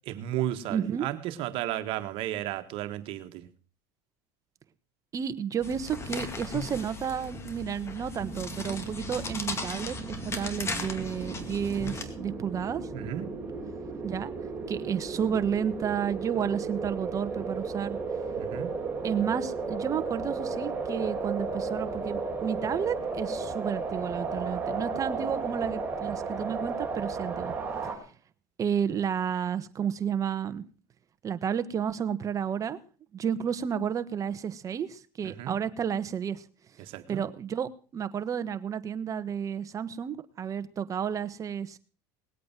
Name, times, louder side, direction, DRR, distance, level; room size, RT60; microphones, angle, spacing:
voice 1, 0.1-3.5 12.9-13.3 18.4-18.8 35.2-35.6 36.8-37.2, right 13 dB, 60° right, 1.6 m, -34 dB
voice 2, 0.7-1.1 5.1-12.8 14.0-14.3 14.7-18.0 19.0-27.5 27.8-27.9 28.6-30.6 31.2-32.8 33.1-36.4 37.1-41.8, right 8 dB, 35° right, 1.3 m, -31 dB
sound 1, 5.6-12.0, left 3 dB, 25° left, 2.2 m, -37 dB
sound 2, 8.2-28.0, right 4 dB, 15° right, 4.1 m, -34 dB
19.5 x 8.4 x 6.1 m
supercardioid pair, 115°, 10 cm